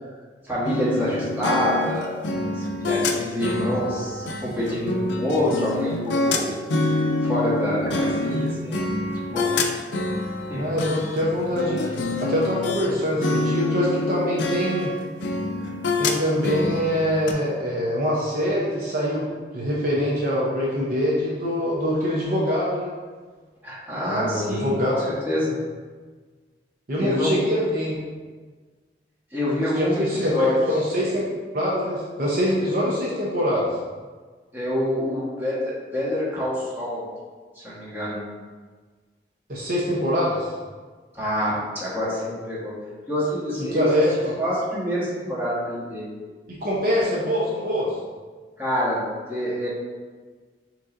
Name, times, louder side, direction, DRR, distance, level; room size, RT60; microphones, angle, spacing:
voice 1, 0.4-2.2 2.5-6.5 7.2-8.8 9.2-9.5 10.5-10.7 23.6-25.6 27.0-27.3 29.3-30.5 34.5-37.0 37.5-38.2 41.1-42.7 43.1-43.9 44.4-46.1 48.6-49.7, left 1 dB, 10° right, -8 dB, 1.2 m, -26 dB
sound 1, 0.6-12.9 13.2-17.3, left 2 dB, 80° left, 0.5 m, -26 dB
voice 2, 10.5-14.9 16.0-19.3 19.5-22.9 24.1-24.9 26.9-28.0 29.8-31.3 31.5-33.7 39.5-40.5 43.6-44.3 46.5-47.9, equal, 50° right, -5 dB, 0.7 m, -24 dB
6.3 x 3.0 x 2.5 m, 1.4 s
head